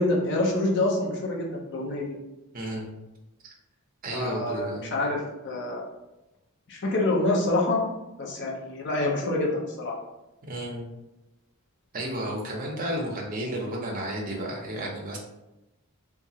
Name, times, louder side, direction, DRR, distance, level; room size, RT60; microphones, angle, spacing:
voice 1, 0.0-2.2 4.1-5.8 6.7-7.8 8.2-9.9, left 2 dB, 55° left, -1 dB, 0.6 m, -26 dB
voice 2, 2.5-2.9 3.4-3.5 4.0-5.0 10.4-10.9 11.9-15.2, right 1 dB, 40° right, 0 dB, 0.6 m, -32 dB
2.8 x 2.3 x 2.7 m, 0.97 s
head